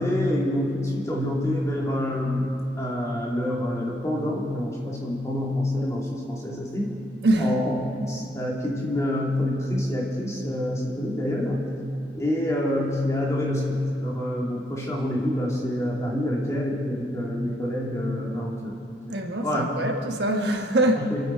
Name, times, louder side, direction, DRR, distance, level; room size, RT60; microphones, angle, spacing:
voice 1, 0.0-7.0 7.4-7.7 8.1-11.8 12.1-18.8 19.4-19.7 21.0-21.2, left 1 dB, 15° left, -4 dB, 2.5 m, -27 dB
voice 2, 19.1-21.0, right 1 dB, 65° right, 3 dB, 1.2 m, -23 dB
26.0 x 9.5 x 4.5 m, 2.6 s
head